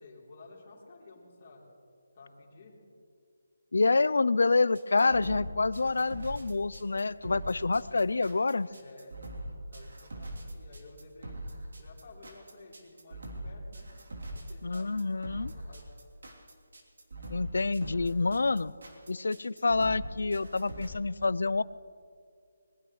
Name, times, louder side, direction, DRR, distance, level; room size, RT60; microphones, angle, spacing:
voice 1, 0.0-1.6 2.1-2.8 8.6-9.2 9.7-11.4 11.8-13.9 14.3-15.8, left 3 dB, 25° left, -5 dB, 3.4 m, -53 dB
voice 2, 3.7-8.7 14.6-15.5 17.3-18.7 19.1-21.6, left 3 dB, 65° left, 19 dB, 0.4 m, -27 dB
sound 1, 4.7-20.9, right 1 dB, 65° right, 3.2 m, -42 dB
21.5 x 21.0 x 3.2 m, 2.3 s
hypercardioid pair, 175°, 0 cm